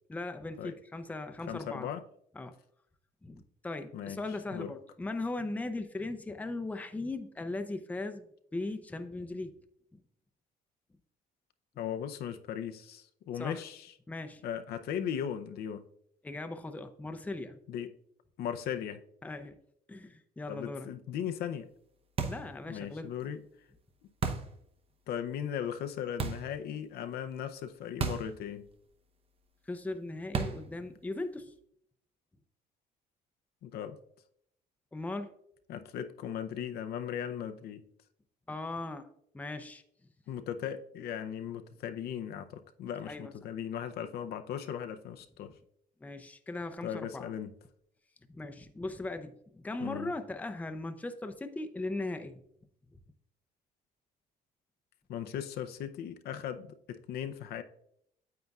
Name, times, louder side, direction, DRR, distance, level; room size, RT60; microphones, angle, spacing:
voice 1, 0.1-1.9 2.4-2.6 3.2-8.3 8.5-9.5 9.9-10.0 13.4-13.6 14.1-14.4 16.2-17.6 19.2-19.6 19.9-20.9 22.3-23.1 29.7-31.5 34.9-35.3 38.5-39.1 39.3-39.8 43.1-43.3 46.0-47.3 48.3-52.4 52.9-53.0, left 2 dB, 10° left, 0.6 m, -38 dB
voice 2, 1.5-2.0 3.9-4.2 4.5-4.7 11.8-13.9 14.4-15.8 17.7-17.9 18.4-19.0 20.5-21.7 22.7-23.4 25.1-28.7 33.6-34.0 35.7-37.8 40.3-45.5 46.8-47.5 49.8-50.1 55.1-57.6, left 9 dB, 70° left, 0.6 m, -37 dB
sound 1, 22.2-22.6 24.2-24.6 26.2-26.5 28.0-28.4 28.6-28.7 30.3-30.7, right 5 dB, 35° right, 0.8 m, -33 dB
9.2 x 7.7 x 2.4 m
cardioid pair, 110°, 17 cm